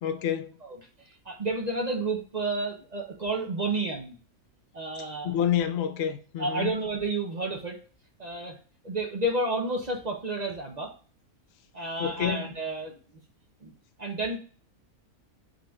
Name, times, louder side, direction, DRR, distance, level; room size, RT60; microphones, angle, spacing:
voice 1, 0.0-0.5 5.2-6.7 12.0-12.4, left 9 dB, 65° left, 0.6 m, -28 dB
voice 2, 1.0-4.1 4.7-5.3 6.4-7.8 8.2-8.6 8.8-10.9 11.7-13.0 13.6-13.7 14.0-14.4, right 2 dB, 45° right, 0.5 m, -31 dB
3.8 x 2.5 x 4.3 m
omnidirectional pair, 1.5 m